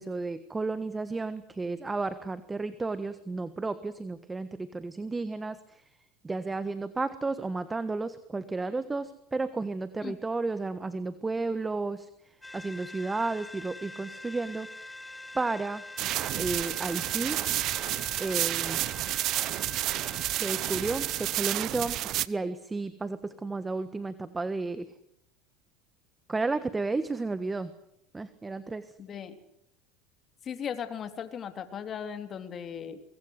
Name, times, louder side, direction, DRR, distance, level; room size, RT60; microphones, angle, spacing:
voice 1, 0.0-5.8 6.2-14.7 15.3-15.8 16.4-17.4 18.2-18.8 20.4-22.0 22.3-24.9 26.3-27.7 28.1-28.9, right 3 dB, 15° right, 13 dB, 1.4 m, -32 dB
sound 1, 12.4-21.5, left 2 dB, 10° left, 0.9 m, -45 dB
sound 2, 16.0-22.3, right 15 dB, 55° right, 0.8 m, -30 dB
voice 2, 29.0-29.4 30.4-33.0, left 8 dB, 40° left, 8 dB, 3.4 m, -37 dB
24.5 x 21.5 x 8.1 m, 0.77 s
supercardioid pair, 100°, 0 cm